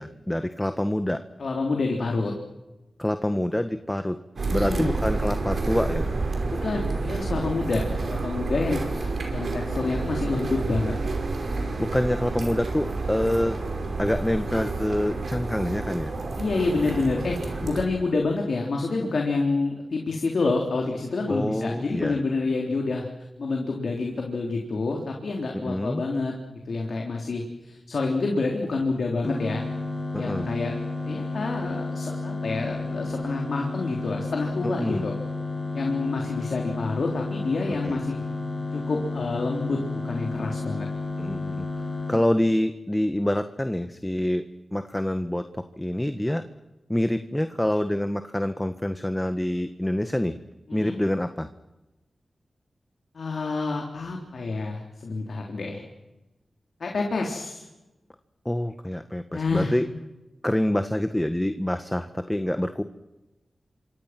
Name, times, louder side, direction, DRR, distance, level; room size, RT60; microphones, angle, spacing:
voice 1, 0.0-1.2 3.0-4.2 4.5-6.1 11.8-13.6 14.0-16.1 21.3-22.2 25.5-26.0 30.1-30.5 34.6-35.0 37.8-38.0 41.2-41.6 42.1-44.4 44.7-46.4 46.9-50.4 50.7-51.5 58.4-59.9 60.4-62.8, left 1 dB, 15° left, 9 dB, 1.6 m, -26 dB
voice 2, 1.4-2.3 4.6-5.0 6.6-10.9 16.4-23.1 23.4-26.3 26.7-29.7 30.2-30.8 31.0-35.2 35.7-38.2 38.7-40.9 50.7-51.0 53.1-55.8 56.8-57.6 59.3-59.8, left 3 dB, 75° left, 1 dB, 3.7 m, -28 dB
sound 1, 4.4-17.8, right 3 dB, 75° right, 5.4 m, -29 dB
sound 2, 29.2-42.2, left 3 dB, 50° left, 7.7 m, -31 dB
28.0 x 26.0 x 6.1 m, 1.0 s
cardioid pair, 40°, 0 cm